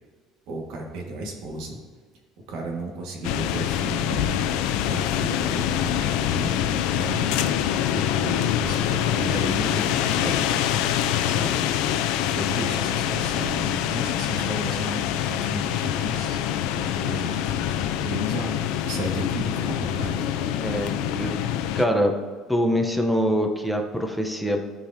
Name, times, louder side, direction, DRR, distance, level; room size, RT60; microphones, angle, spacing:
voice 1, 0.5-1.8 2.5-7.6 7.9-10.7 11.3-11.6 12.3-16.4 16.7-18.6 18.8-20.2, right 2 dB, 70° right, 0 dB, 1.6 m, -34 dB
sound 1, 3.2-21.8, left 10 dB, 80° left, 0.4 m, -25 dB
voice 2, 20.6-21.3 21.7-22.2 22.5-24.6, equal, ahead, 3 dB, 0.7 m, -24 dB
13.0 x 4.9 x 2.7 m, 1.5 s
cardioid pair, 155°, 0 cm